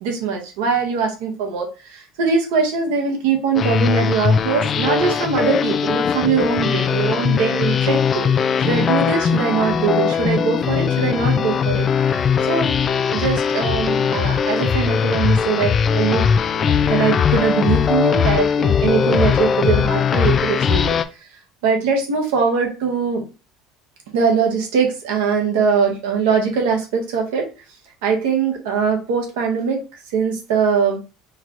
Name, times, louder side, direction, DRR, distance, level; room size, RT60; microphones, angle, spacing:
voice 1, 0.0-8.3 8.6-11.8 12.5-12.7 13.1-16.3 16.5-20.9 21.6-23.2 24.1-27.5 28.0-29.8 30.1-31.0, right 5 dB, 80° right, 1 dB, 1.2 m, -21 dB
sound 1, 3.5-21.0, left 7 dB, 40° left, 0.4 m, -19 dB
4.5 x 2.4 x 3.0 m, 0.31 s
supercardioid pair, 85°, 0 cm